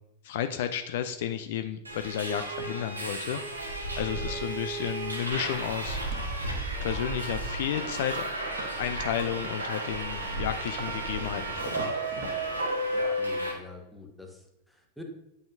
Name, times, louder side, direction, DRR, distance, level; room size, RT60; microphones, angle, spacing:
voice 1, 0.2-6.0 6.8-8.3 8.8-11.9, left 10 dB, 55° left, 9 dB, 0.4 m, -32 dB
Subway metro underground, 1.8-13.5, right 1 dB, 80° right, 1.2 m, -33 dB
sound 1, 6.1-12.6, right 2 dB, 45° right, 1.2 m, -46 dB
voice 2, 12.9-15.0, left 2 dB, ahead, 1 dB, 1.2 m, -47 dB
8.6 x 5.5 x 2.6 m, 0.85 s
figure-of-eight pair, 90°, 0 cm